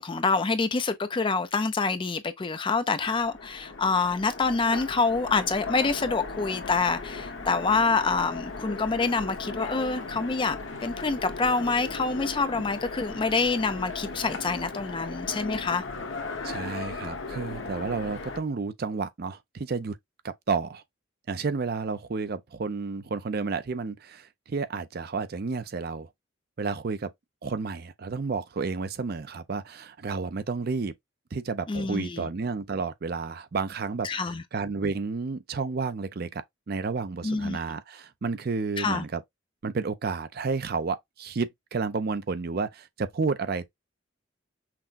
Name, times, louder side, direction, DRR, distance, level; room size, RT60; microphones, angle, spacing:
voice 1, 0.0-15.8 31.7-32.3 34.0-34.4 37.2-37.6 38.8-39.0, left 4 dB, 25° left, 0.4 m, -26 dB
Train, 3.0-18.4, left 3 dB, 70° left, 1.1 m, -37 dB
voice 2, 16.4-20.0 20.2-20.8 21.3-26.1 26.6-27.1 27.4-30.9 31.3-39.2 39.6-43.7, right 4 dB, 50° right, 0.5 m, -31 dB
5.8 x 2.1 x 2.5 m
head